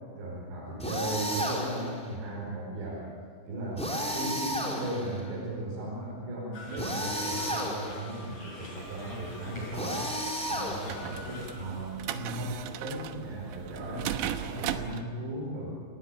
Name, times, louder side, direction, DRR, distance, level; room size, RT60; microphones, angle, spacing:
voice 1, 0.1-3.1 3.5-10.1 10.5-15.8, right 1 dB, 70° right, -4 dB, 7.2 m, -36 dB
sound 1, 0.8-1.9 3.8-5.2 6.8-8.1 9.7-11.2, equal, ahead, 3.6 m, -32 dB
sound 2, 6.5-11.9, left 1 dB, 35° left, 8.7 m, -45 dB
sound 3, 8.8-15.0, right 11 dB, 90° right, 3.4 m, -38 dB
29.5 x 19.0 x 9.3 m, 2.3 s
omnidirectional pair, 5.2 m